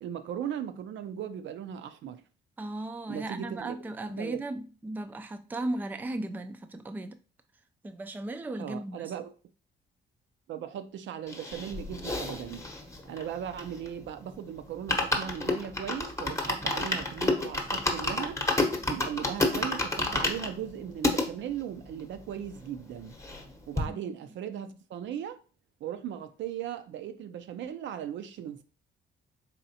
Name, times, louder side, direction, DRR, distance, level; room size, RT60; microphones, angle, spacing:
voice 1, 0.0-2.2 3.1-3.8 4.2-4.4 8.6-9.3 10.5-12.7 13.1-18.4 18.9-23.1 23.7-25.4 25.8-28.6, right 9 dB, 70° right, 0.5 m, -38 dB
voice 2, 2.6-7.2 7.8-9.1 23.9-24.0, right 2 dB, 10° right, 0.3 m, -36 dB
sound 1, 11.3-14.1 14.4-14.5 14.7-21.3 21.8-21.9 22.1-22.2 22.5-23.5 23.8-23.9, left 2 dB, 15° left, 0.8 m, -30 dB
4.1 x 3.2 x 2.8 m
cardioid pair, 90°, 20 cm